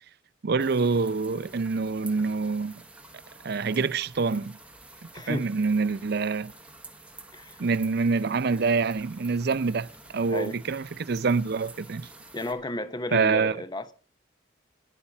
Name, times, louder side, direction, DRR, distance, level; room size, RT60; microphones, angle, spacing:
voice 1, 0.4-2.8 3.4-4.6 5.3-6.5 7.6-12.1 13.1-13.6, right 4 dB, 55° right, 0.5 m, -26 dB
sound 1, 0.6-12.5, right 2 dB, 5° right, 1.0 m, -49 dB
voice 2, 5.1-5.5 7.3-7.6 10.3-10.6 12.3-13.9, left 1 dB, 20° left, 0.9 m, -33 dB
10.0 x 8.6 x 7.1 m
head